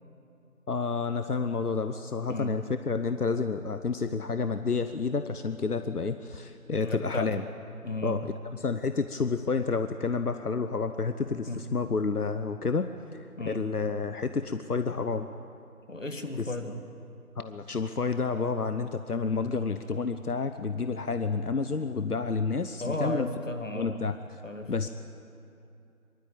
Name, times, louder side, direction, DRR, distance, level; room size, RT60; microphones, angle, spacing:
voice 1, 0.7-7.4 8.0-15.3 16.4-16.5 17.4-23.3 23.7-24.2 24.7-24.9, left 4 dB, 85° left, 9 dB, 1.0 m, -30 dB
voice 2, 6.8-7.3 7.8-8.2 11.5-11.6 13.4-13.6 15.9-16.8 22.8-24.0 24.4-24.7, left 2 dB, 55° left, 6 dB, 2.0 m, -34 dB
24.5 x 13.0 x 8.7 m, 2.6 s
figure-of-eight pair, 175°, 45 cm